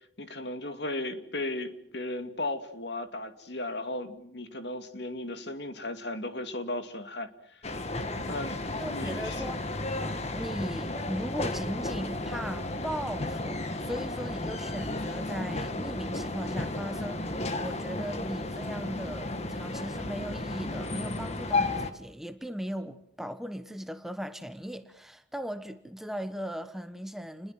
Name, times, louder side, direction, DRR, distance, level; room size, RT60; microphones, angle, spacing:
voice 1, 0.2-7.6 8.2-8.6 8.8-9.4, left 2 dB, 65° left, 2.4 m, -36 dB
sound 1, 7.6-21.9, left 2 dB, 35° left, 1.9 m, -33 dB
voice 2, 8.8-9.8 10.3-27.5, equal, ahead, 1.1 m, -38 dB
29.5 x 21.5 x 7.7 m
head